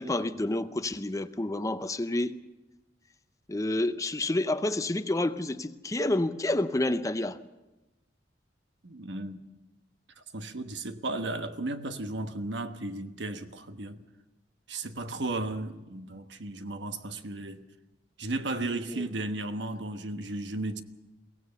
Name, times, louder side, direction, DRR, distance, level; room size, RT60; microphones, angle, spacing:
voice 1, 0.0-2.4 3.5-7.4 18.9-19.1, left 2 dB, 20° left, 0.6 m, -29 dB
voice 2, 8.8-9.4 10.3-14.0 14.7-17.6 18.2-20.8, right 2 dB, 70° right, 1.2 m, -34 dB
23.0 x 17.0 x 6.9 m
head